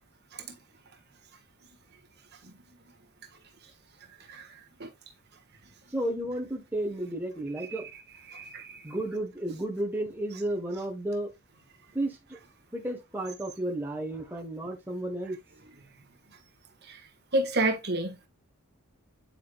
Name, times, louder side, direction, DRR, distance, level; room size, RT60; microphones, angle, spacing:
voice 1, 5.9-7.9 8.8-11.3 11.9-12.4 12.7-15.4, right 1 dB, 10° right, 1.3 m, -32 dB
voice 2, 8.3-8.8 16.9-17.0 17.3-18.3, right 2 dB, 50° right, 1.5 m, -29 dB
9.3 x 5.0 x 2.3 m
head